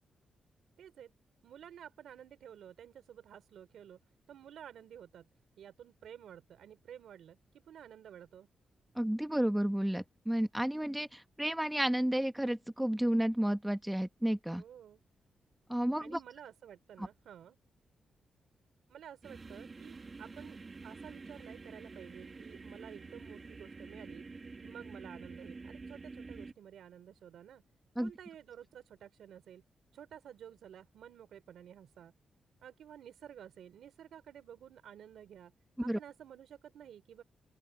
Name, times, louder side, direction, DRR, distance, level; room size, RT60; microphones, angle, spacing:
voice 1, 0.8-1.1 1.4-4.0 4.3-5.3 5.6-8.5 14.6-15.0 16.0-17.6 18.9-24.3 24.6-27.6 28.0-29.6 29.9-32.1 32.6-35.5 35.8-37.2, right 9 dB, 90° right, 3.6 m, -52 dB
voice 2, 9.0-14.6 15.7-16.2 28.0-28.1 35.8-36.0, right 1 dB, 5° right, 1.3 m, -31 dB
sound 1, 19.2-26.5, right 4 dB, 30° right, 1.5 m, -48 dB
open air
wide cardioid pair, 165°, 0 cm